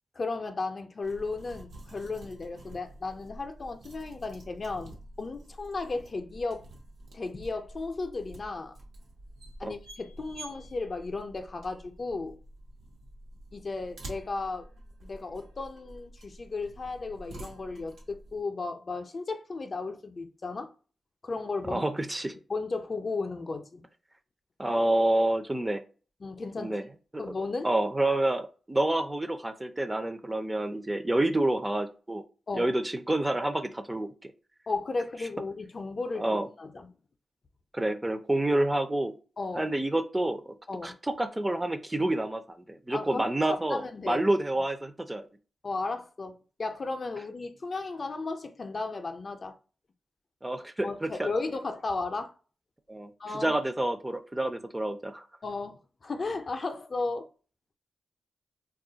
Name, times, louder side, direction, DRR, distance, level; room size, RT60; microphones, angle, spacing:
voice 1, 0.2-6.6 7.1-8.8 9.6-12.4 13.5-14.7 15.0-20.7 21.2-21.8 22.3-23.8 26.2-26.7 27.2-27.7 32.5-32.7 34.7-36.9 39.4-39.7 40.7-41.0 42.9-44.2 45.6-46.3 46.6-49.6 50.8-52.3 53.2-53.6 55.4-57.3, left 3 dB, 45° left, 0.5 m, -35 dB
sound 1, 1.0-18.4, right 1 dB, 85° right, 0.9 m, -48 dB
voice 2, 21.7-22.3 24.6-25.8 26.6-26.9 27.1-27.3 27.6-32.2 32.5-34.3 36.2-36.5 37.7-39.1 39.6-40.6 40.8-43.8 44.1-45.2 50.4-51.3 52.9-55.2, right 1 dB, 15° right, 0.4 m, -28 dB
2.3 x 2.1 x 3.8 m
cardioid pair, 75°, 0 cm